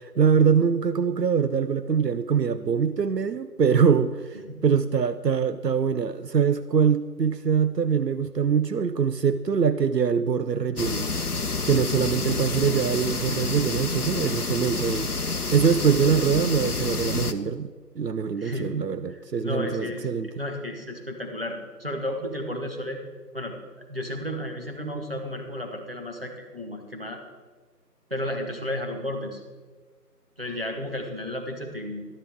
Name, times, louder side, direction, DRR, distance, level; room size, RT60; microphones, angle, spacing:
voice 1, 0.0-11.1 11.7-17.7 18.0-20.3, right 6 dB, 80° right, 12 dB, 0.6 m, -23 dB
sound 1, 10.8-17.3, left 3 dB, 65° left, 0.8 m, -29 dB
voice 2, 18.4-20.1 20.3-23.0 23.3-23.5 23.9-27.2 28.1-29.4 30.4-32.0, left 1 dB, 35° right, 2 dB, 1.3 m, -33 dB
13.0 x 12.5 x 3.5 m, 1.4 s
figure-of-eight pair, 175°, 48 cm